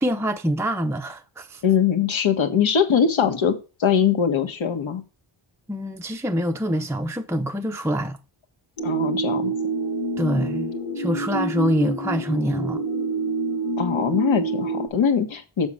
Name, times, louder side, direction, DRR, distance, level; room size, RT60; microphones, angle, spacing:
voice 1, 0.0-1.6 5.7-8.2 10.2-12.8, equal, 5° right, 0.5 m, -25 dB
voice 2, 1.6-5.0 8.8-9.5 13.8-15.7, left 7 dB, 65° left, 1.6 m, -22 dB
sound 1, 8.8-14.9, right 2 dB, 85° left, 1.7 m, -27 dB
7.1 x 5.7 x 6.2 m
wide cardioid pair, 125°, 50 cm